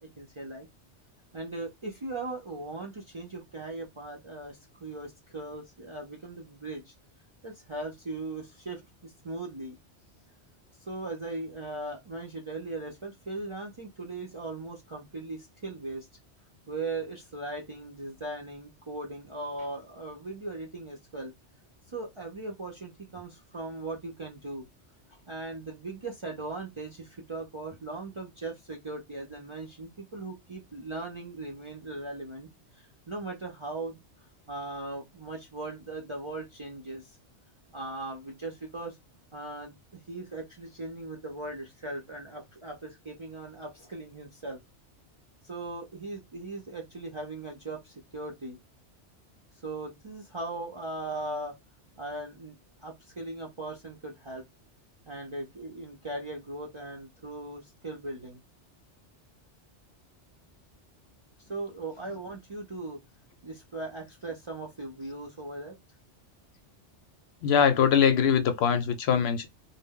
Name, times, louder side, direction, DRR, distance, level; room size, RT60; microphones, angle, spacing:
voice 1, 0.0-0.7 1.3-6.9 7.4-9.8 10.8-16.1 16.7-21.3 21.9-24.7 25.3-32.5 32.7-37.2 37.7-39.0 39.3-44.6 45.4-48.6 49.6-51.5 52.0-52.6 52.8-54.4 55.1-58.4 61.4-63.0 63.4-65.8, right 2 dB, 40° right, 0.4 m, -39 dB
voice 2, 67.4-69.5, left 7 dB, 70° left, 0.8 m, -22 dB
2.1 x 2.0 x 3.5 m
omnidirectional pair, 1.2 m